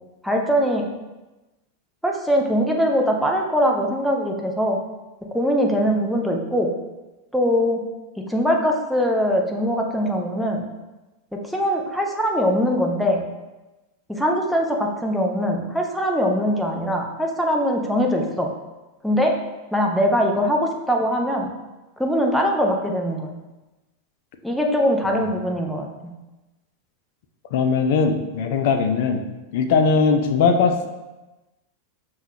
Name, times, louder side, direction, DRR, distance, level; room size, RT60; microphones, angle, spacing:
voice 1, 0.2-0.9 2.0-4.8 5.3-6.7 7.3-7.8 8.3-10.6 11.4-13.2 14.1-18.5 19.0-19.3 19.7-21.5 22.0-23.3 24.4-26.1, equal, ahead, 0 dB, 0.5 m, -22 dB
voice 2, 27.5-29.2 29.5-30.9, left 5 dB, 50° left, 6 dB, 0.4 m, -20 dB
5.5 x 2.3 x 2.9 m, 1.1 s
figure-of-eight pair, 90°, 0 cm